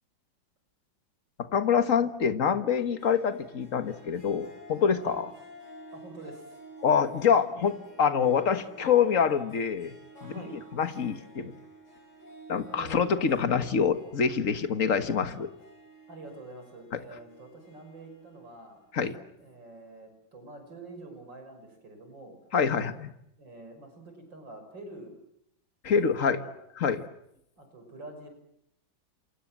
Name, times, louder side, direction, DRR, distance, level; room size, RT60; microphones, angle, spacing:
voice 1, 1.4-5.3 6.8-10.0 10.2-10.3 10.7-11.5 12.5-15.5 18.9-19.1 22.5-23.1 25.8-26.4 26.8-27.0, left 6 dB, 45° left, 9 dB, 1.9 m, -26 dB
Harp, 2.7-19.5, right 1 dB, 60° left, 6.6 m, -52 dB
voice 2, 5.9-6.6 10.2-10.6 12.7-13.3 16.1-18.8 19.4-22.4 23.4-25.2 25.8-26.5 27.6-28.3, right 2 dB, 70° right, 6 dB, 6.6 m, -46 dB
29.0 x 27.0 x 7.6 m, 0.78 s
omnidirectional pair, 2.1 m